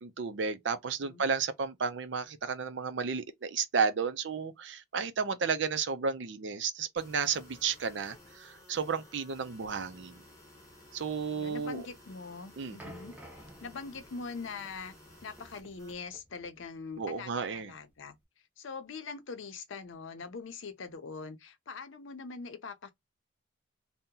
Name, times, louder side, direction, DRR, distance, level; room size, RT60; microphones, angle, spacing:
voice 1, 0.0-10.2 10.9-11.8 12.6-12.8 17.0-17.7, right 5 dB, 65° right, 0.5 m, -32 dB
sound 1, 7.0-16.0, left 1 dB, 15° left, 0.9 m, -56 dB
voice 2, 11.3-14.9 15.2-18.2 18.6-22.9, left 4 dB, 80° left, 0.6 m, -43 dB
sound 2, 12.8-18.2, equal, 10° right, 0.6 m, -54 dB
2.8 x 2.1 x 3.6 m
head